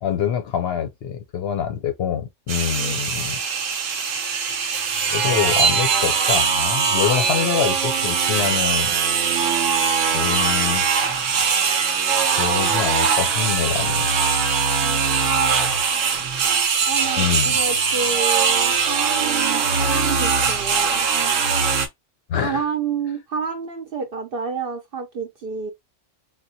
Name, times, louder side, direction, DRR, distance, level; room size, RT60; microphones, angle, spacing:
voice 1, 0.0-3.4 5.1-8.9 10.1-10.8 11.8-12.0 12.3-14.1 17.2-17.6 22.3-22.7, left 8 dB, 65° left, 0.7 m, -25 dB
sound 1, 2.5-21.9, right 6 dB, 80° right, 1.0 m, -21 dB
voice 2, 16.9-21.1 22.4-25.7, right 6 dB, 55° right, 0.7 m, -29 dB
3.5 x 2.2 x 2.7 m
omnidirectional pair, 1.3 m